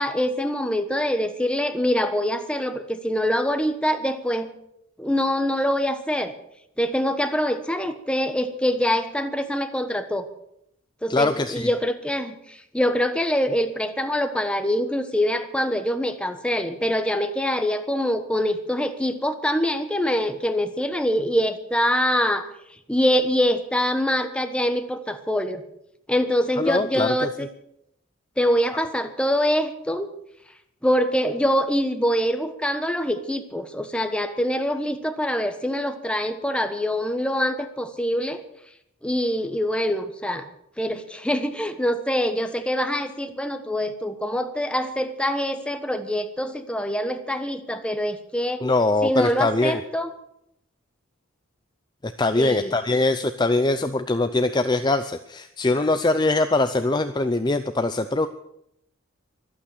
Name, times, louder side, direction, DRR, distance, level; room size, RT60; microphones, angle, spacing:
voice 1, 0.0-4.5 5.0-6.3 6.8-10.3 11.0-22.5 22.9-25.6 26.1-27.5 28.4-30.1 30.8-38.4 39.0-40.5 40.8-48.6 49.0-50.1 52.4-52.7, equal, 5° left, 8 dB, 1.2 m, -24 dB
voice 2, 11.1-11.7 26.6-27.3 48.6-49.8 52.0-58.3, left 2 dB, 20° left, 9 dB, 0.6 m, -22 dB
24.0 x 8.8 x 6.7 m, 0.74 s
head